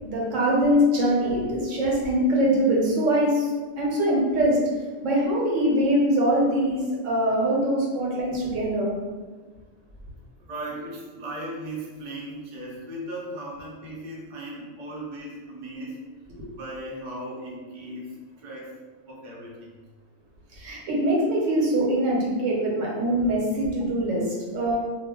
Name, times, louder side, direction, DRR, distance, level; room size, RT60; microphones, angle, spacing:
voice 1, 0.0-4.6 5.0-8.9 16.4-16.5 20.5-24.8, equal, 80° right, -4 dB, 1.1 m, -23 dB
voice 2, 10.5-16.0 16.6-18.7 19.1-19.7, right 1 dB, 45° right, -4 dB, 0.7 m, -37 dB
2.4 x 2.1 x 3.5 m, 1.4 s
omnidirectional pair, 1.3 m